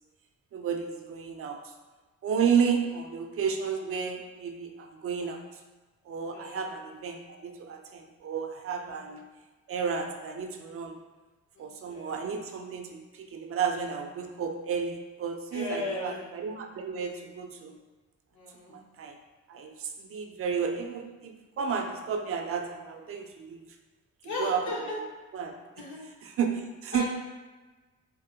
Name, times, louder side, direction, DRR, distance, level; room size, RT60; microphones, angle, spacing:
voice 1, 0.5-1.6 2.2-5.4 6.1-9.2 9.7-11.0 11.6-17.8 18.7-19.2 19.5-23.7 24.4-24.6 25.3-25.5 26.2-27.1, right 6 dB, 50° right, 4 dB, 0.4 m, -32 dB
voice 2, 6.3-6.6 8.7-9.2 11.6-12.3 15.5-16.2 18.3-18.8 24.2-25.0 25.8-26.0 26.9-27.1, left 2 dB, 75° left, -3 dB, 0.9 m, -37 dB
3.6 x 2.1 x 2.7 m, 1.3 s
cardioid pair, 90°, 30 cm